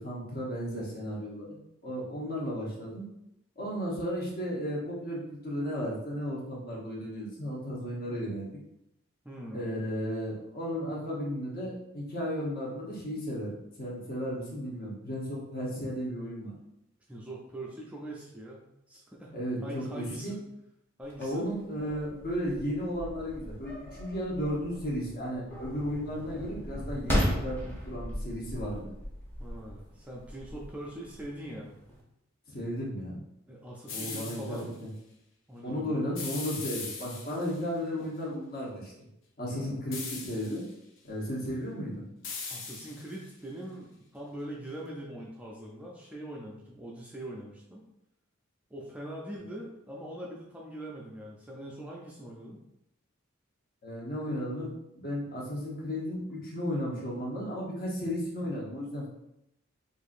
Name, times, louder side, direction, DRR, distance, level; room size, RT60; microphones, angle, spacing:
voice 1, 0.0-3.1 3.6-8.5 9.5-16.5 19.3-20.4 21.2-28.9 32.5-33.2 33.9-34.9 35.6-39.1 39.4-40.7 41.0-42.0 53.8-59.1, equal, 45° left, -4 dB, 1.0 m, -34 dB
voice 2, 9.2-9.7 17.1-19.3 19.6-20.4 21.0-21.5 29.4-31.7 33.5-34.7 35.5-36.0 39.5-39.8 42.5-47.8 48.7-52.6, right 1 dB, 5° right, -3 dB, 0.4 m, -42 dB
sound 1, 21.0-32.0, equal, 10° left, 0.8 m, -37 dB
sound 2, 33.9-34.6 36.2-37.6 39.9-40.7 42.2-43.3, left 4 dB, 65° left, 0.6 m, -40 dB
4.5 x 2.6 x 2.5 m, 0.83 s
head